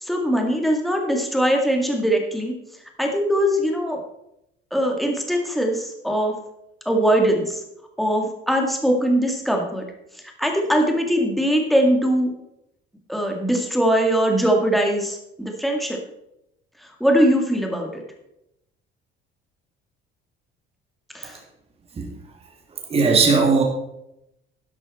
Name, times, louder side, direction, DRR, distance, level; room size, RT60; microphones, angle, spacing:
voice 1, 0.0-2.5 3.0-4.0 4.7-6.3 6.9-7.6 8.0-9.8 10.4-12.3 13.1-16.0 17.0-18.0 21.1-21.4, equal, ahead, 1 dB, 2.1 m, -21 dB
voice 2, 22.7-23.6, right 4 dB, 30° right, 2 dB, 2.4 m, -19 dB
12.0 x 11.0 x 4.3 m, 0.83 s
cardioid pair, 155°, 21 cm